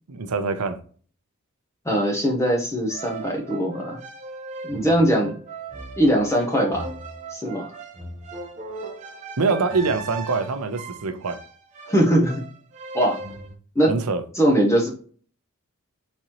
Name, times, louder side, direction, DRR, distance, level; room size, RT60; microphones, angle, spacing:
voice 1, 0.1-0.8 9.4-11.4 13.9-14.2, right 4 dB, 80° right, 0.6 m, -24 dB
voice 2, 1.8-4.0 4.6-5.3 6.0-6.9 7.3-7.7 11.9-12.4 12.9-13.2 13.7-13.9 14.4-14.9, equal, 15° left, 0.7 m, -21 dB
sound 1, 2.9-13.6, right 3 dB, 35° right, 1.0 m, -38 dB
4.3 x 3.8 x 3.0 m
head